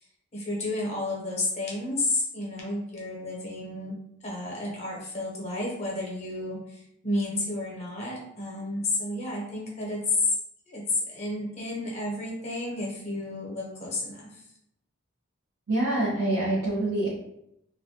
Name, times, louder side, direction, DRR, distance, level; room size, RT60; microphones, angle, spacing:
voice 1, 0.3-3.9 4.2-10.4 10.7-14.4, left 2 dB, 30° left, -3 dB, 0.6 m, -31 dB
voice 2, 15.7-17.1, right 1 dB, 90° right, -8 dB, 0.6 m, -25 dB
2.2 x 2.1 x 2.6 m, 0.78 s
head